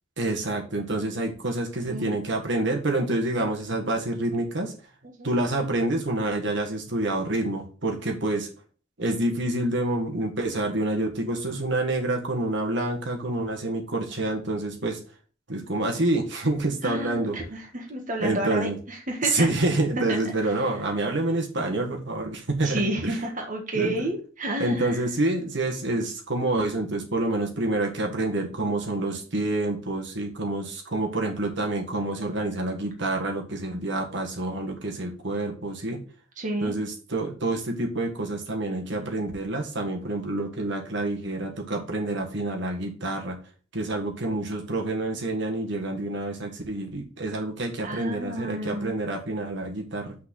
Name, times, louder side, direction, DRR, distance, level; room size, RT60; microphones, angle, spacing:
voice 1, 0.2-4.7 5.2-8.5 9.0-15.0 15.5-17.3 18.2-18.8 19.2-23.2 23.7-24.1 24.6-36.0 36.6-43.4 43.7-50.2, right 2 dB, 65° right, 2 dB, 1.7 m, -27 dB
voice 2, 16.8-19.5 20.1-20.2 22.6-25.0 36.4-36.8 47.8-48.9, right 1 dB, 40° right, 1 dB, 1.5 m, -30 dB
6.2 x 4.7 x 6.2 m, 0.39 s
head